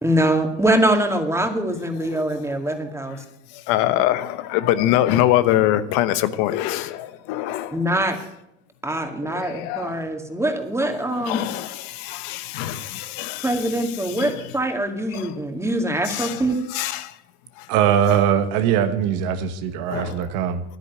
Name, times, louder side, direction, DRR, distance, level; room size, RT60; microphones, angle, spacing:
voice 1, 0.0-3.2 7.7-8.2 8.8-11.5 13.4-16.6, right 1 dB, 10° right, 2.2 m, -23 dB
voice 2, 3.5-7.8 9.2-10.0 11.1-13.7 14.0-14.3 15.1-15.3 16.0-16.4 16.7-17.1 17.6-17.7 18.1-18.2 19.9-20.3, left 13 dB, 80° left, 1.0 m, -24 dB
voice 3, 17.7-20.6, right 9 dB, 85° right, 1.4 m, -21 dB
10.0 x 9.6 x 9.4 m
supercardioid pair, 95°, 29 cm